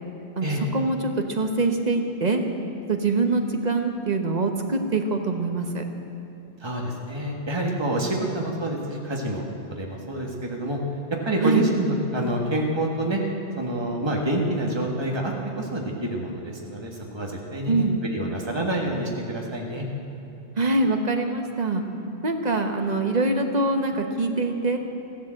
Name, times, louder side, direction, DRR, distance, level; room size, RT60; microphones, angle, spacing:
voice 1, 0.4-2.4 2.9-5.8 11.4-11.7 17.7-18.0 20.6-21.8 22.2-24.8, right 3 dB, 40° right, 4 dB, 1.3 m, -24 dB
voice 2, 6.6-9.4 9.7-10.8 11.3-13.2 13.6-19.9, right 1 dB, 25° right, -1 dB, 1.8 m, -27 dB
15.0 x 12.5 x 7.7 m, 2.9 s
omnidirectional pair, 1.1 m